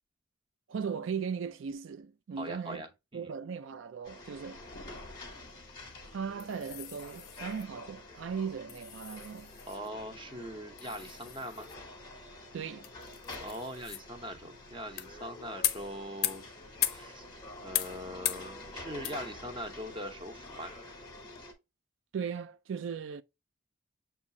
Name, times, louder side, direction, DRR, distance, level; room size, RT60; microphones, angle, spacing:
voice 1, 0.7-2.8 3.1-4.6 6.1-9.6 12.5-12.9 22.1-23.2, right 6 dB, 70° right, 0.3 m, -37 dB
voice 2, 2.4-3.3 9.7-11.7 13.4-16.4 16.8-17.3 17.6-20.7, equal, 25° right, 0.8 m, -42 dB
sound 1, 4.0-21.5, left 2 dB, 20° left, 0.9 m, -48 dB
sound 2, 4.5-21.4, left 12 dB, 50° left, 0.5 m, -41 dB
7.2 x 2.4 x 2.6 m
head